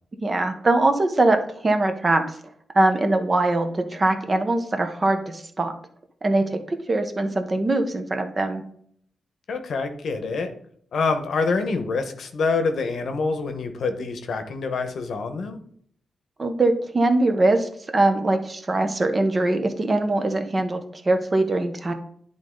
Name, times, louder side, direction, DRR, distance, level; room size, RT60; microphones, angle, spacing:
voice 1, 0.2-2.2 2.7-5.7 6.2-8.6 16.4-21.9, right 2 dB, 25° right, 6 dB, 0.8 m, -22 dB
voice 2, 9.5-10.5 10.9-15.6, left 4 dB, 60° left, 7 dB, 0.9 m, -26 dB
10.5 x 3.8 x 3.8 m, 0.64 s
wide cardioid pair, 140°, 0 cm